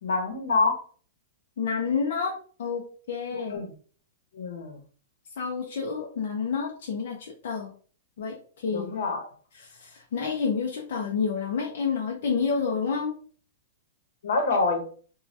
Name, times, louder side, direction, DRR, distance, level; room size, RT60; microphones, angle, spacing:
voice 1, 0.0-0.8 3.3-3.7 4.3-4.8 8.7-9.3 14.2-14.8, left 3 dB, 75° left, 4 dB, 0.9 m, -26 dB
voice 2, 1.6-2.3 2.6-2.8 3.1-3.6 5.4-7.7 8.2-8.9 9.5-13.1, left 5 dB, 55° left, -1 dB, 0.5 m, -29 dB
3.2 x 2.2 x 2.7 m, 0.42 s
supercardioid pair, 180°, 0 cm